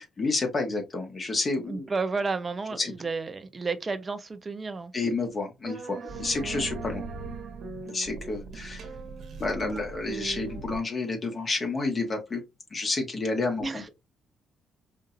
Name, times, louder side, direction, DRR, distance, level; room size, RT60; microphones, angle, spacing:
voice 1, 0.0-1.9 2.8-2.9 4.9-7.0 7.8-8.9 9.4-12.4 12.7-13.9, left 3 dB, 35° left, 1.5 m, -30 dB
voice 2, 1.7-4.9 13.6-13.9, right 4 dB, 30° right, 0.8 m, -32 dB
sound 1, 5.6-10.8, right 4 dB, 70° right, 1.3 m, -38 dB
5.2 x 2.7 x 2.6 m
cardioid pair, 90°, 0 cm